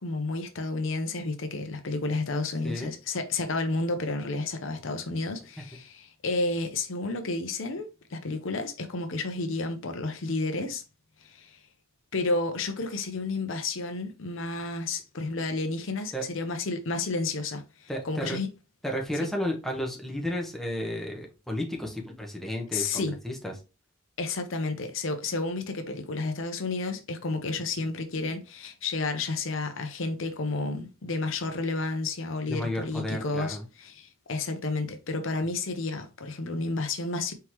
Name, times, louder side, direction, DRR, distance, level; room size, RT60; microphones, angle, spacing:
voice 1, 0.0-10.8 11.2-11.6 12.1-18.5 19.1-19.3 22.7-23.2 24.2-37.3, left 3 dB, 65° left, 0.7 m, -31 dB
voice 2, 17.9-18.4 18.8-23.5 32.5-33.6, left 1 dB, ahead, 0.9 m, -32 dB
4.4 x 3.6 x 3.0 m
head